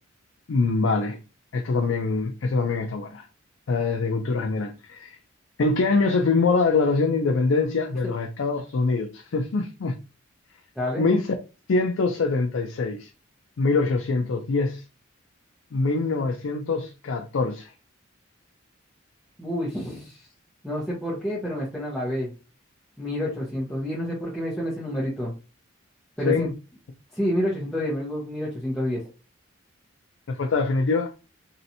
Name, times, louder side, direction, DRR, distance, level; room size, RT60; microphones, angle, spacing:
voice 1, 0.5-1.2 1.5-3.3 3.7-5.2 5.6-10.0 11.0-11.3 11.7-13.1 13.6-14.8 15.7-17.7 26.3-26.5 30.3-31.1, left 3 dB, 70° left, 0.4 m, -24 dB
voice 2, 10.7-11.1 19.4-20.2 20.6-22.3 23.0-25.3 26.2-26.5 27.1-29.0, equal, ahead, 0.9 m, -28 dB
3.1 x 2.7 x 2.7 m
head